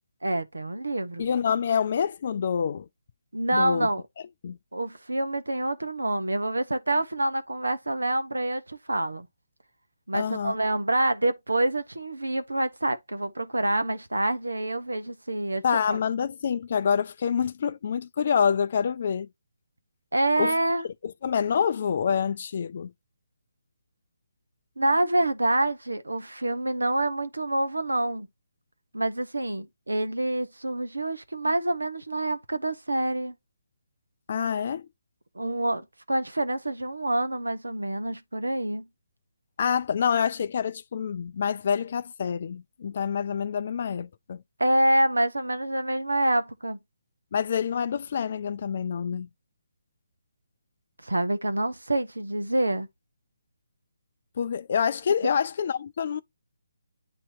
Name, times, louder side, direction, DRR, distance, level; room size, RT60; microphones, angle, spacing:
voice 1, 0.2-1.3 3.3-4.0 4.7-9.3 10.1-15.6 15.9-16.0 20.1-20.9 24.8-28.3 28.9-33.3 35.3-38.9 44.6-46.8 51.0-52.9, right 1 dB, 90° right, 0.9 m, -27 dB
voice 2, 1.2-2.9 3.5-3.9 4.4-4.6 10.1-10.6 15.6-19.3 20.4-20.5 21.0-22.9 34.3-34.9 39.6-44.4 47.3-49.3 54.4-56.2, left 7 dB, 50° left, 0.3 m, -27 dB
8.7 x 2.9 x 4.4 m
figure-of-eight pair, 150°, 0 cm